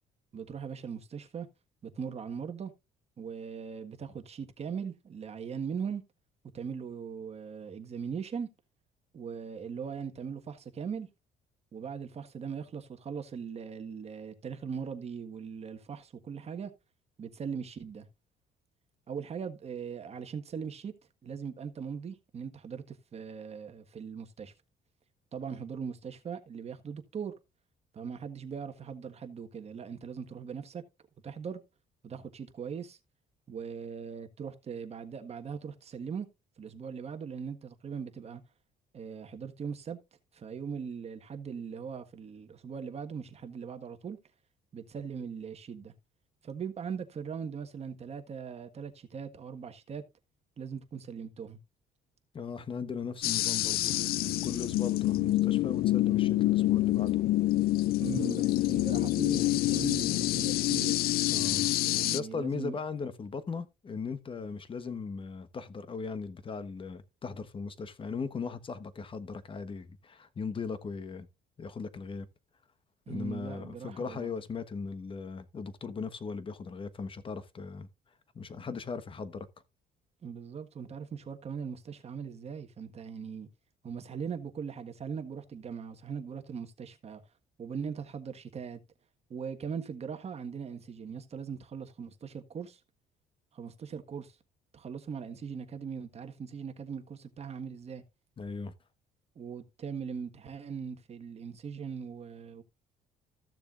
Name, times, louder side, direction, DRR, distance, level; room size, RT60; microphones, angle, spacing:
voice 1, 0.3-1.5 1.8-2.7 3.2-6.0 6.5-8.5 9.1-11.1 11.7-16.7 17.2-18.1 19.1-20.9 21.2-24.5 25.3-27.3 27.9-30.8 31.2-31.6 32.0-33.0 33.5-36.3 36.6-38.4 38.9-40.0 40.3-44.2 44.7-45.9 46.4-50.0 50.6-51.6 58.0-61.0 61.8-62.8 73.1-74.4 80.2-83.5 83.8-87.2 87.6-88.8 89.3-92.8 93.5-94.3 94.7-98.0 99.3-102.6, right 6 dB, 40° right, 1.5 m, -40 dB
voice 2, 52.3-57.2 61.3-71.3 71.6-72.3 73.1-77.9 78.3-79.5 98.4-98.7, left 5 dB, 30° left, 1.2 m, -38 dB
sound 1, 53.2-62.2, left 16 dB, 65° left, 0.4 m, -27 dB
15.0 x 6.9 x 2.5 m
cardioid pair, 110°, 17 cm